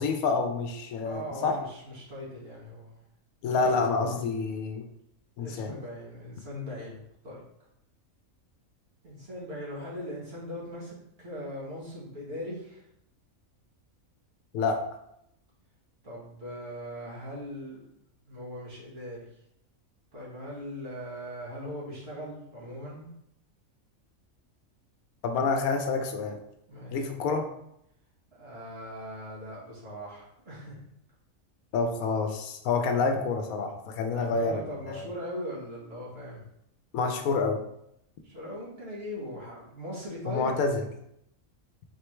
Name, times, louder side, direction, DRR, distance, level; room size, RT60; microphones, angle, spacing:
voice 1, 0.0-1.6 3.4-4.9 5.4-5.7 14.5-14.8 25.2-26.4 26.9-27.5 31.7-35.0 36.9-37.6 40.3-40.8, left 4 dB, 80° left, 5 dB, 1.1 m, -28 dB
voice 2, 1.0-3.0 5.4-7.4 9.0-12.8 16.0-17.9 18.3-19.3 20.1-23.1 26.7-27.0 28.4-30.8 34.0-36.4 38.2-40.6, equal, 45° right, -6 dB, 1.5 m, -40 dB
4.5 x 3.3 x 3.1 m, 0.77 s
omnidirectional pair, 1.5 m